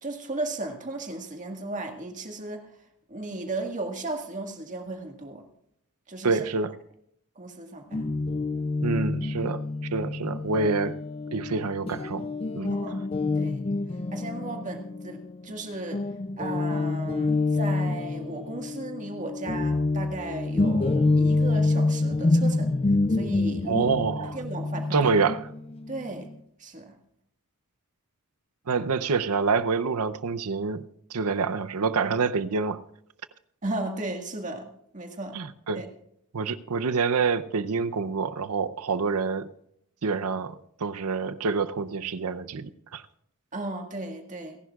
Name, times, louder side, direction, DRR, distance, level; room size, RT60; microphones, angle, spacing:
voice 1, 0.0-2.7 3.1-5.4 6.1-6.4 7.3-8.1 12.7-13.0 13.3-13.6 14.1-16.1 16.4-22.7 23.1-23.9 24.3-25.1 25.9-26.3 26.6-27.0 33.6-35.4 35.7-35.9 43.5-44.6, right 2 dB, 35° right, 1.8 m, -35 dB
voice 2, 6.2-6.7 8.8-11.0 11.3-12.3 12.5-12.8 23.7-24.4 24.9-25.4 28.7-30.8 31.1-32.8 35.3-35.8 36.3-39.5 40.0-40.5 40.8-43.0, right 4 dB, 85° right, 0.7 m, -27 dB
Guitar, 7.9-15.6 15.9-26.4, left 2 dB, 25° left, 0.4 m, -27 dB
29.0 x 11.0 x 2.4 m
head